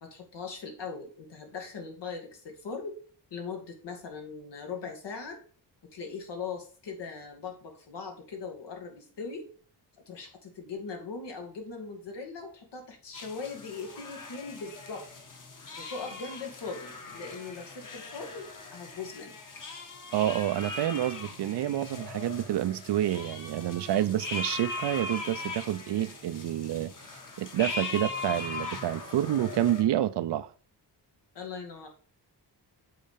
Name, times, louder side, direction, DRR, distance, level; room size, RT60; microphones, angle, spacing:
voice 1, 0.0-3.0 3.3-5.4 5.9-9.5 10.1-15.1 15.8-19.4 31.3-31.9, left 5 dB, 85° left, 2.0 m, -40 dB
sound 1, 13.1-29.8, left 3 dB, 50° left, 1.6 m, -40 dB
voice 2, 20.1-30.5, right 12 dB, 75° right, 0.6 m, -29 dB
7.7 x 4.2 x 5.0 m
wide cardioid pair, 115°, 41 cm